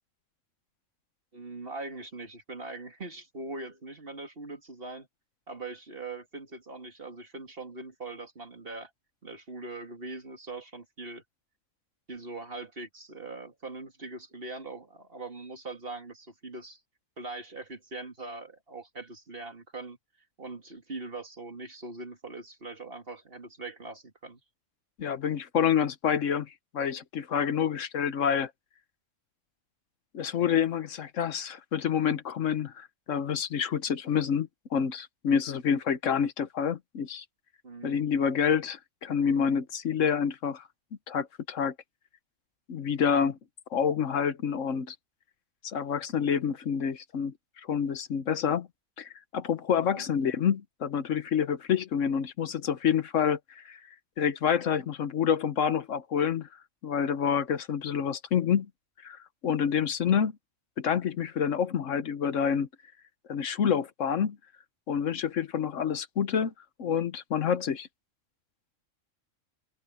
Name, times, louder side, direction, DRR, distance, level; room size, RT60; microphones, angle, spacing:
voice 1, 1.3-5.1 5.5-8.9 9.2-11.2 12.1-16.8 17.2-20.0 20.4-24.4 37.6-38.1 49.7-50.1, right 3 dB, 45° right, 2.9 m, -41 dB
voice 2, 25.0-28.5 30.1-37.2 37.8-40.6 41.1-41.7 42.7-43.4 43.7-44.9 45.6-48.7 49.0-53.8 54.2-56.5 56.8-58.7 59.0-60.3 60.8-62.7 63.3-64.4 64.9-66.5 66.8-67.9, left 7 dB, 75° left, 1.3 m, -28 dB
open air
omnidirectional pair, 1.3 m